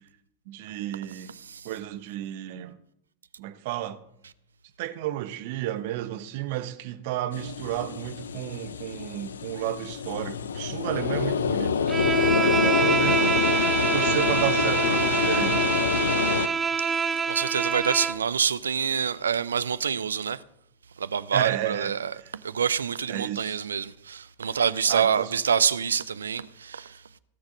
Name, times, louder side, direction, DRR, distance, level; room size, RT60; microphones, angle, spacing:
voice 1, 0.5-1.3 1.6-2.7 3.4-4.0 4.8-15.7 21.3-22.0 23.1-23.7 24.9-25.3, right 13 dB, 50° right, 1.0 m, -32 dB
voice 2, 1.4-1.7 16.8-20.4 21.0-22.1 22.4-27.0, right 7 dB, 70° right, 0.5 m, -27 dB
sound 1, 7.3-16.5, left 6 dB, 65° left, 0.6 m, -26 dB
Bowed string instrument, 11.9-18.3, right 5 dB, 20° right, 0.5 m, -26 dB
17.0 x 6.4 x 7.3 m
figure-of-eight pair, 90°, 0 cm